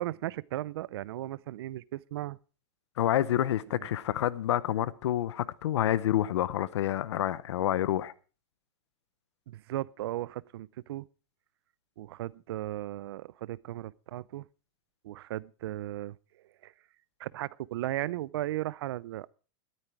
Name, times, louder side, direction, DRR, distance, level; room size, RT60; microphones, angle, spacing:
voice 1, 0.0-2.4 3.7-3.9 9.5-11.1 12.0-14.5 15.0-16.2 16.6-16.7 17.2-19.3, right 14 dB, 65° right, 0.5 m, -36 dB
voice 2, 3.0-8.1, left 12 dB, 90° left, 0.9 m, -28 dB
13.0 x 12.5 x 4.6 m
supercardioid pair, 175°, 14 cm